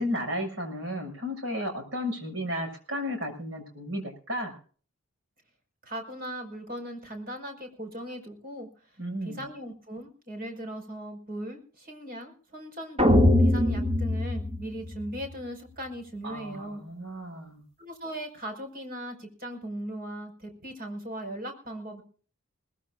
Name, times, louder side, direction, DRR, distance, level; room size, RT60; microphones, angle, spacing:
voice 1, 0.0-4.5 9.0-9.4 16.2-17.6, equal, 60° right, 5 dB, 6.7 m, -33 dB
voice 2, 5.8-8.7 9.2-16.8 17.8-22.0, right 1 dB, 40° right, 5 dB, 5.2 m, -38 dB
sound 1, 13.0-15.3, left 1 dB, 25° right, 2.3 m, -22 dB
22.0 x 20.0 x 2.5 m, 0.42 s
head